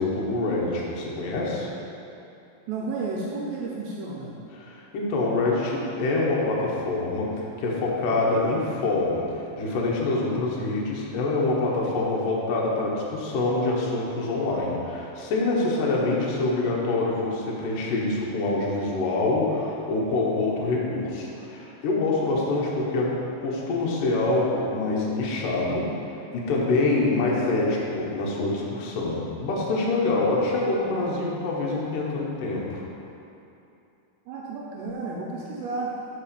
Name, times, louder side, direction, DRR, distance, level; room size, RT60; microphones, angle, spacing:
voice 1, 0.0-1.7 4.5-25.9 26.3-32.8, left 2 dB, 85° left, -4 dB, 1.9 m, -25 dB
voice 2, 2.7-4.4 34.3-35.9, right 3 dB, 85° right, -3 dB, 2.5 m, -32 dB
7.4 x 4.9 x 6.9 m, 2.7 s
omnidirectional pair, 5.8 m